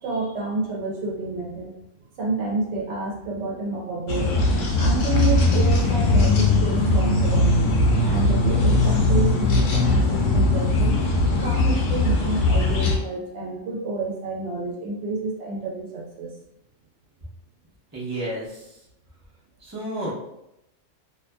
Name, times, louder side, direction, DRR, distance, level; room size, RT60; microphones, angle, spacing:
voice 1, 0.0-1.7 2.2-4.3 4.7-7.6 8.0-11.0 11.4-16.3, right 3 dB, 70° right, -2 dB, 0.9 m, -29 dB
sound 1, 4.1-13.0, left 2 dB, 85° left, 1.0 m, -20 dB
voice 2, 17.9-18.8 19.6-20.1, right 1 dB, 15° right, -7 dB, 0.7 m, -31 dB
2.6 x 2.5 x 2.2 m, 0.83 s
omnidirectional pair, 1.3 m